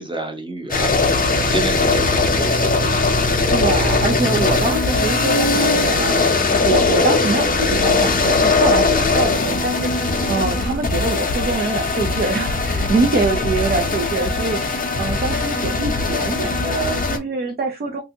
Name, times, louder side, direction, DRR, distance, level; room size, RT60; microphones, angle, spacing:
voice 1, 0.0-3.1, right 2 dB, 15° right, 0.9 m, -29 dB
sound 1, 0.7-17.2, left 3 dB, 30° left, 0.6 m, -19 dB
voice 2, 3.3-18.0, right 3 dB, 30° right, 0.5 m, -24 dB
3.3 x 2.6 x 2.8 m
wide cardioid pair, 150°, 30 cm